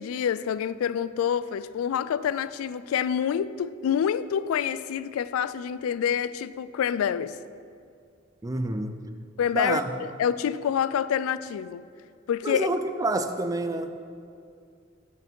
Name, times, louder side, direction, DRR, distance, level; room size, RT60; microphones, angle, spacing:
voice 1, 0.0-7.4 9.4-11.8 12.3-12.7, left 8 dB, 90° left, 0.3 m, -27 dB
voice 2, 8.4-9.0 9.5-9.8 12.4-13.9, right 2 dB, 15° right, 0.4 m, -28 dB
8.2 x 5.9 x 5.3 m
head